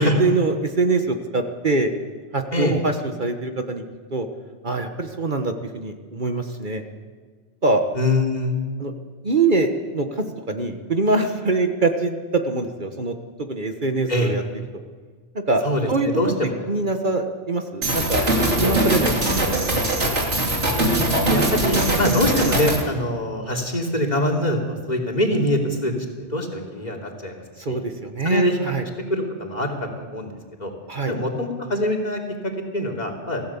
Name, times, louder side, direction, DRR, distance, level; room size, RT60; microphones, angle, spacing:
voice 1, 0.0-1.9 2.3-3.8 4.1-4.3 4.6-6.8 7.6-7.8 8.8-8.9 9.2-14.4 15.5-15.6 15.9-16.1 16.7-18.3 18.6-19.1 19.6-19.9 27.6-28.8 30.9-31.1, right 3 dB, 45° right, 5 dB, 1.4 m, -23 dB
voice 2, 7.9-8.6 14.1-14.3 15.6-16.5 20.7-25.9 26.2-27.3 27.7-27.8 28.2-30.7 31.1-33.4, left 1 dB, 35° left, 3 dB, 3.1 m, -24 dB
sound 1, 17.8-22.8, right 1 dB, 70° right, 3.3 m, -21 dB
24.5 x 16.0 x 7.2 m, 1.5 s
omnidirectional pair, 1.2 m